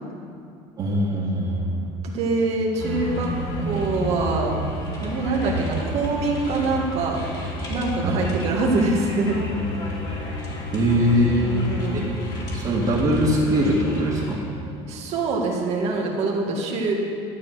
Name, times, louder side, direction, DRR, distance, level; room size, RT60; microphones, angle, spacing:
voice 1, 0.8-1.7 5.5-5.6 8.0-8.2 10.7-11.6 11.9-12.1 12.5-14.4, equal, 35° right, -7 dB, 2.0 m, -22 dB
voice 2, 2.0-3.3 3.7-4.6 5.0-7.2 7.7-9.4 11.4-12.1 14.9-16.9, right 3 dB, 55° right, -1 dB, 1.8 m, -24 dB
sound 1, 2.8-14.4, left 1 dB, 30° left, 3.1 m, -30 dB
12.5 x 7.5 x 6.4 m, 2.5 s
cardioid pair, 130°, 13 cm